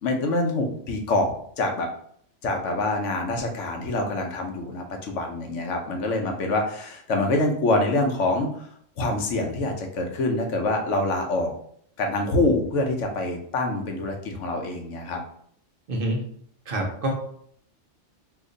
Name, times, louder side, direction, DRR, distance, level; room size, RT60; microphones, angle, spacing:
voice 1, 0.0-1.3 1.6-1.9 2.4-8.7 9.0-11.5 12.0-15.2, left 2 dB, 85° left, 3 dB, 1.0 m, -25 dB
voice 2, 15.9-16.2 16.7-17.1, right 1 dB, 55° right, 0 dB, 0.8 m, -26 dB
2.8 x 2.5 x 3.8 m, 0.65 s
omnidirectional pair, 1.2 m